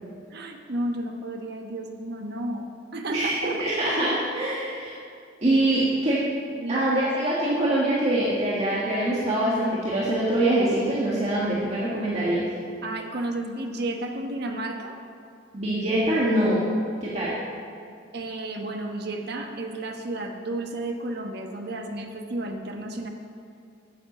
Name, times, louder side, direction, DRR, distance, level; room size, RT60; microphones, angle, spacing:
voice 1, 0.3-3.6 6.5-6.8 12.8-15.0 17.1-17.2 18.1-23.1, right 1 dB, 60° right, 4 dB, 1.1 m, -32 dB
voice 2, 3.1-4.9 5.4-6.2 6.7-12.5 15.5-16.6 17.0-17.3, right 1 dB, 35° right, -7 dB, 1.7 m, -24 dB
9.2 x 8.0 x 7.3 m, 2.3 s
head